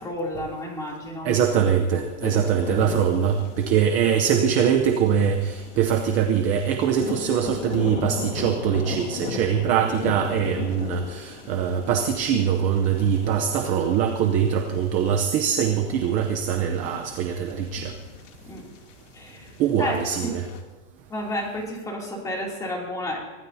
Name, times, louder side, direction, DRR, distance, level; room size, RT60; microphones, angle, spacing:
voice 1, 0.0-1.4 1.9-2.0 2.3-2.4 18.5-18.7 19.1-19.5 19.8-20.4 21.1-23.2, left 1 dB, 10° left, -1 dB, 2.8 m, -31 dB
voice 2, 1.2-17.9 19.6-20.4, right 8 dB, 20° right, 4 dB, 0.7 m, -23 dB
sound 1, 2.2-20.6, left 6 dB, 90° left, 2.8 m, -37 dB
24.5 x 16.0 x 2.8 m, 1.4 s
supercardioid pair, 180°, 36 cm